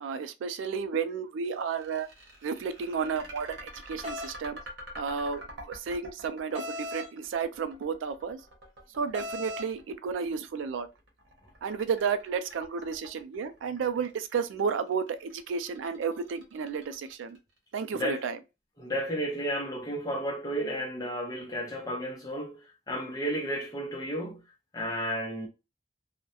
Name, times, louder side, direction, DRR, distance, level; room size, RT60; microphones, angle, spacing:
voice 1, 0.0-2.1 2.4-4.6 5.0-8.4 9.0-10.9 11.6-17.4 17.7-18.4, right 6 dB, 85° right, 0.3 m, -32 dB
sound 1, 1.4-17.6, equal, 65° right, 0.8 m, -47 dB
sound 2, 4.0-4.3 6.5-7.1 9.1-9.7, left 1 dB, 30° right, 0.5 m, -36 dB
voice 2, 18.8-24.4 24.7-25.5, equal, 20° left, 0.5 m, -33 dB
2.3 x 2.1 x 2.7 m
head